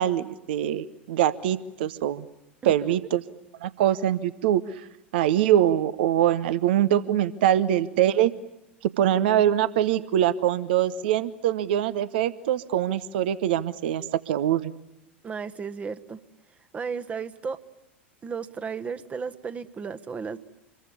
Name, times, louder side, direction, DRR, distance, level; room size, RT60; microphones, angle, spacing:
voice 1, 0.0-2.3 2.6-3.2 3.6-4.6 5.1-8.3 8.8-14.7, right 11 dB, 55° right, 16 dB, 0.9 m, -23 dB
voice 2, 15.2-16.2 16.7-17.6 18.2-20.4, right 5 dB, 20° right, 12 dB, 1.3 m, -34 dB
26.5 x 22.5 x 9.8 m, 0.89 s
figure-of-eight pair, 85°, 6 cm